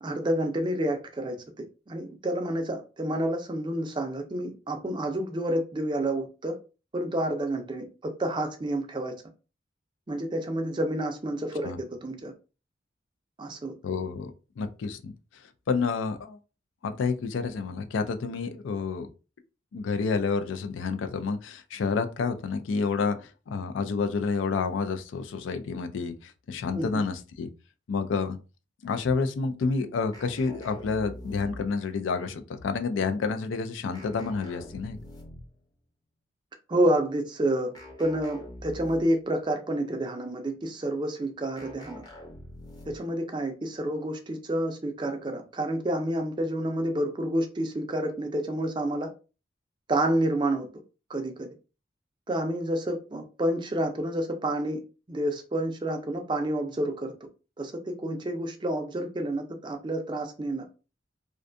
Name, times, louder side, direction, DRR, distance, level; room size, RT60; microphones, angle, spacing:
voice 1, 0.0-1.4 1.9-6.5 6.9-9.1 10.1-12.3 13.4-13.7 26.7-26.9 36.7-37.7 38.0-42.0 42.9-49.1 49.9-50.7 51.1-51.5 52.3-54.8 55.1-57.1 57.6-60.6, right 1 dB, 25° right, 0.4 m, -29 dB
voice 2, 13.8-15.1 15.7-16.4 16.8-19.1 19.7-27.5 27.9-28.4 28.8-35.0, left 4 dB, 80° left, 0.4 m, -29 dB
sound 1, 30.1-31.9 33.9-35.6 37.7-39.3 41.6-43.2, left 1 dB, 20° left, 0.6 m, -45 dB
2.5 x 2.2 x 2.5 m
head